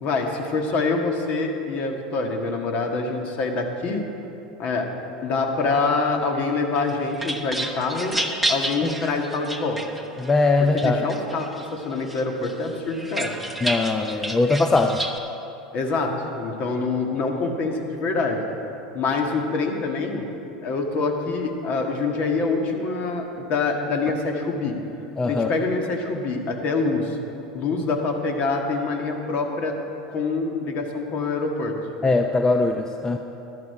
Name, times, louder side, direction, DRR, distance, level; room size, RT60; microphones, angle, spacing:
voice 1, 0.0-4.0 4.6-4.9 5.2-8.2 8.5-9.8 10.7-13.3 15.7-18.4 18.9-20.3 20.6-24.7 25.3-27.2 27.5-29.8 30.1-31.7, left 3 dB, 50° left, 3 dB, 1.7 m, -25 dB
sound 1, 6.8-10.3 10.8-11.7 12.1-15.2, right 1 dB, ahead, 1.0 m, -30 dB
voice 2, 10.2-11.1 13.6-15.0 25.2-25.5 32.0-33.2, left 3 dB, 20° left, 5 dB, 0.6 m, -21 dB
12.0 x 11.5 x 4.8 m, 2.9 s
hypercardioid pair, 90°, 3 cm